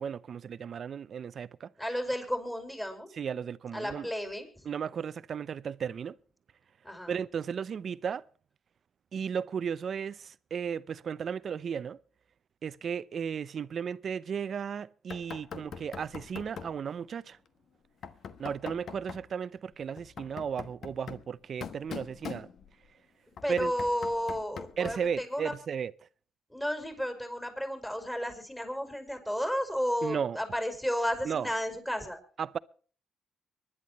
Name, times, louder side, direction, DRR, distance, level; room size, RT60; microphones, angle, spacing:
voice 1, 0.0-1.7 3.2-4.1 4.6-6.2 7.1-8.2 9.1-12.0 12.6-17.4 18.4-22.5 23.5-23.7 24.8-25.9 30.0-30.4 31.2-31.5 32.4-32.6, right 7 dB, 55° right, 0.7 m, -35 dB
voice 2, 1.8-3.1 3.7-4.7 6.8-7.2 23.4-25.5 26.5-32.2, equal, 10° left, 4.9 m, -33 dB
Knock, 15.1-16.8 18.0-19.3 20.0-22.9 23.4-25.2, left 7 dB, 60° left, 1.2 m, -43 dB
24.5 x 11.0 x 3.1 m
cardioid pair, 90°, 0 cm